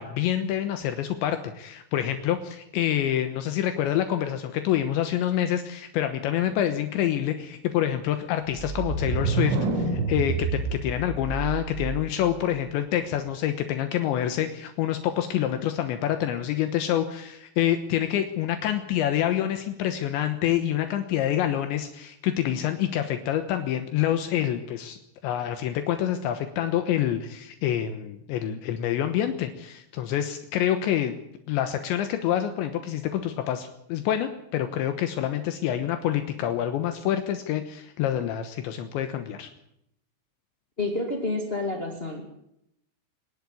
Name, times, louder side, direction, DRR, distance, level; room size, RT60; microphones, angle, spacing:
voice 1, 0.0-25.0 25.2-31.1 31.5-39.5, left 11 dB, 75° left, 8 dB, 3.4 m, -27 dB
sound 1, 8.5-12.3, right 4 dB, 85° right, 5.8 m, -28 dB
voice 2, 40.8-42.3, left 2 dB, 25° left, 2 dB, 1.2 m, -29 dB
24.5 x 11.5 x 9.8 m, 0.79 s
omnidirectional pair, 5.4 m